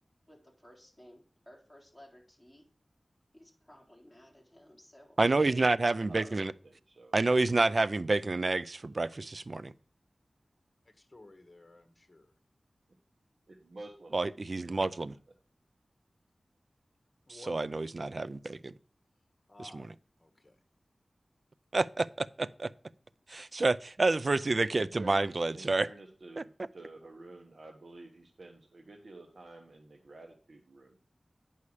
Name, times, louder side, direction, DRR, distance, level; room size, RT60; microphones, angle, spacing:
voice 1, 0.3-2.6 3.3-5.6 5.9-6.1, equal, 5° left, 3.7 m, -57 dB
voice 2, 5.2-6.5 7.1-9.7 14.1-15.2 17.5-18.7 19.7-19.9 21.7-22.7 23.3-25.9 26.4-26.5, right 3 dB, 55° right, 0.4 m, -29 dB
voice 3, 6.1-7.2 13.5-14.1 14.8-14.9 24.8-31.0, right 2 dB, 70° right, 1.1 m, -50 dB
voice 4, 10.8-12.3 17.3-17.5 19.5-19.9 20.2-20.5, left 2 dB, 35° left, 1.5 m, -54 dB
9.7 x 5.6 x 4.8 m
wide cardioid pair, 70°, 0 cm